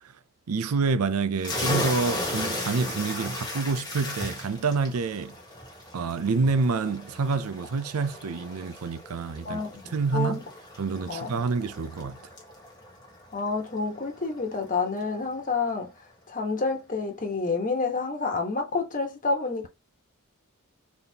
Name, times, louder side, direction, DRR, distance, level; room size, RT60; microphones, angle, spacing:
voice 1, 0.5-5.3 5.9-9.6 9.9-10.4 10.8-12.2, right 4 dB, 85° right, 0.5 m, -27 dB
sound 1, 1.4-14.7, left 1 dB, 20° left, 1.4 m, -36 dB
voice 2, 9.4-10.4 11.1-11.3 13.3-15.9 16.3-19.7, left 4 dB, 40° left, 1.2 m, -29 dB
4.0 x 3.5 x 2.8 m
head